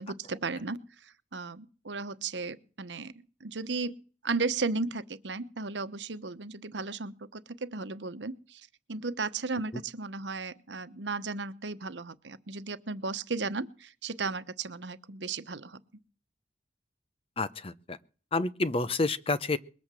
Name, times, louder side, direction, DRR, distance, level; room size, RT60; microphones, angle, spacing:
voice 1, 0.0-3.1 3.4-4.0 4.2-15.8, right 4 dB, 90° right, 1.1 m, -35 dB
voice 2, 17.4-18.0 18.3-19.6, left 3 dB, 35° left, 0.8 m, -29 dB
21.5 x 8.7 x 7.6 m
head